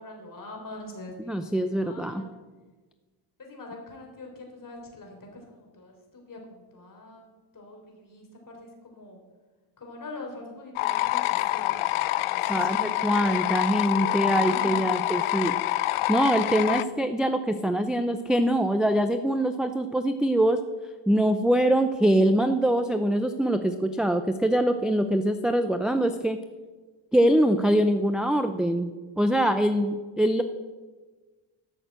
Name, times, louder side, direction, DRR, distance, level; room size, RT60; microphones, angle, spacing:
voice 1, 0.0-2.4 3.4-7.3 7.5-9.2 9.8-15.2, left 2 dB, 40° left, 1 dB, 3.6 m, -43 dB
voice 2, 1.3-2.2 12.5-15.6 16.1-20.6 21.1-26.4 27.1-30.4, right 1 dB, ahead, 7 dB, 0.4 m, -24 dB
sound 1, 10.8-16.8, left 16 dB, 85° left, 0.6 m, -26 dB
13.0 x 6.7 x 7.5 m, 1.3 s
cardioid pair, 120°, 49 cm